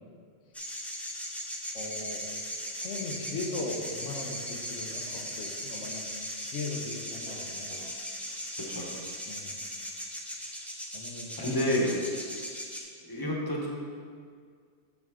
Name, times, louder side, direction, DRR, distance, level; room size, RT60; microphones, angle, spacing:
sound 1, 0.5-12.8, equal, ahead, 0.5 m, -38 dB
voice 1, 1.7-2.2 2.7-6.1 6.4-7.8 8.1-8.5 9.3-9.6 10.9-11.6, left 3 dB, 90° left, 1 dB, 1.2 m, -38 dB
sound 2, 7.3-7.9, equal, 50° right, 1.0 m, -49 dB
voice 2, 8.6-8.9 11.4-12.1 13.1-13.7, left 1 dB, 20° left, -3 dB, 1.0 m, -29 dB
7.1 x 6.0 x 3.6 m, 2.1 s
omnidirectional pair, 1.2 m